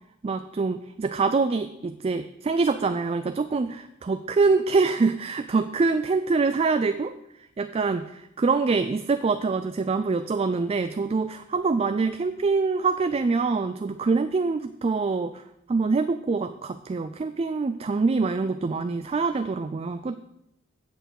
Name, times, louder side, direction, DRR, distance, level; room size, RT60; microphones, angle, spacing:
voice 1, 0.2-7.1 7.6-15.4 15.7-20.2, right 4 dB, 30° right, 10 dB, 0.3 m, -25 dB
8.0 x 6.7 x 6.4 m, 0.82 s
head